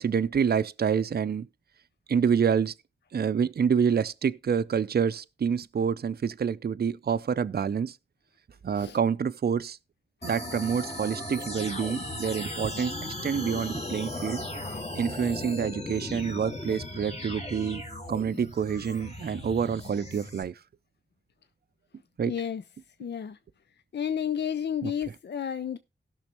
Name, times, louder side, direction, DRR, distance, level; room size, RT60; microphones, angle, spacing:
voice 1, 0.0-1.5 2.1-2.7 3.1-8.0 8.6-9.8 10.2-12.9 13.2-14.4 15.0-17.8 18.1-20.5 22.2-22.3 24.8-24.9, right 7 dB, 55° right, 0.5 m, -27 dB
sound 1, 10.2-20.4, left 1 dB, 35° left, 2.0 m, -37 dB
voice 2, 22.3-22.6 23.0-23.4 23.9-25.8, left 8 dB, 60° left, 0.5 m, -31 dB
17.0 x 6.2 x 3.0 m
wide cardioid pair, 60°, 20 cm